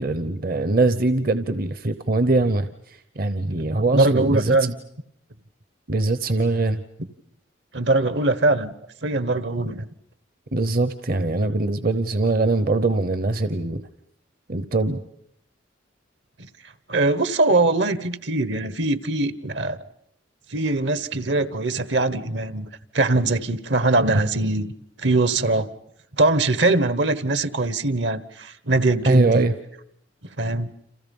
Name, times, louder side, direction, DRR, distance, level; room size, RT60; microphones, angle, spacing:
voice 1, 0.0-2.7 3.2-4.6 5.9-6.8 10.5-13.8 14.5-15.0 29.0-29.5, right 2 dB, 50° right, 0.9 m, -22 dB
voice 2, 3.5-4.7 7.7-8.7 9.0-9.8 16.9-19.8 20.5-22.7 22.9-24.7 25.0-25.7 26.1-29.4 30.4-30.7, right 2 dB, 70° right, 1.3 m, -22 dB
30.0 x 27.5 x 5.4 m
head